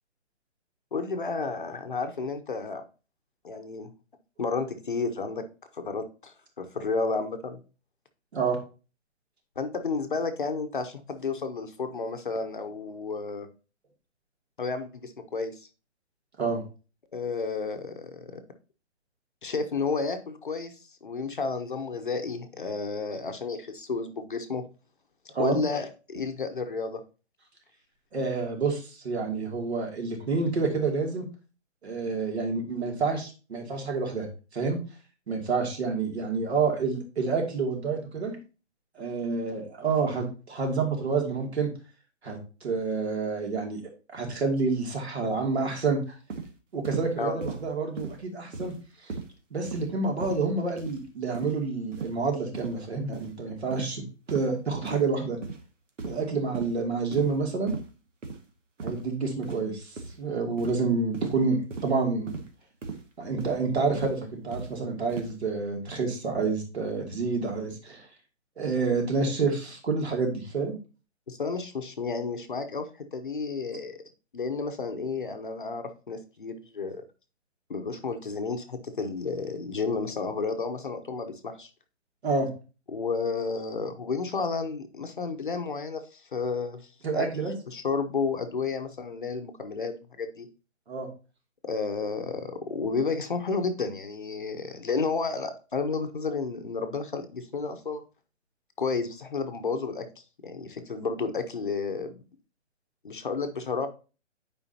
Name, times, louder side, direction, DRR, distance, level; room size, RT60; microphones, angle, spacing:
voice 1, 0.9-2.8 3.4-3.9 4.4-5.4 5.7-7.6 9.6-13.5 14.6-15.7 17.1-18.4 19.4-20.7 21.0-24.6 25.4-27.0 47.2-47.3 71.3-74.0 74.3-77.0 77.7-81.7 82.9-86.8 87.1-87.3 87.7-90.5 91.6-98.0 98.8-100.1 100.4-102.2 103.0-103.9, left 4 dB, 45° left, 7 dB, 0.8 m, -31 dB
voice 2, 28.1-31.3 31.8-34.3 34.5-34.8 35.3-38.4 39.0-41.7 42.2-46.2 46.7-48.7 49.0-49.1 49.5-55.4 56.0-57.7 58.8-62.3 63.2-68.1 68.6-70.7 82.2-82.5 87.0-87.5 90.9-91.1, right 4 dB, 60° right, 1 dB, 2.6 m, -28 dB
sound 1, 46.3-46.5 46.8-47.1 47.4-47.6 48.0-48.2 48.5-48.8 49.1-49.3 49.6-49.9 50.2-50.5 50.8-51.0 51.3-51.6 51.9-52.1 52.5-52.7 53.1-53.3 53.7-53.9 54.3-54.5 54.8-55.1 55.4-55.6 56.0-56.3 56.5-56.7 57.1-57.4 57.7-57.9 58.2-58.4 58.8-59.1 59.4-59.7 60.0-60.2 60.6-60.8 61.1-61.4 61.7-61.9 62.3-62.5 62.8-63.0 63.4-63.6 63.9-64.2 64.5-64.7 65.1-65.3, right 4 dB, 90° right, 1.8 m, -36 dB
10.0 x 5.0 x 2.8 m, 0.33 s
hypercardioid pair, 180°, 36 cm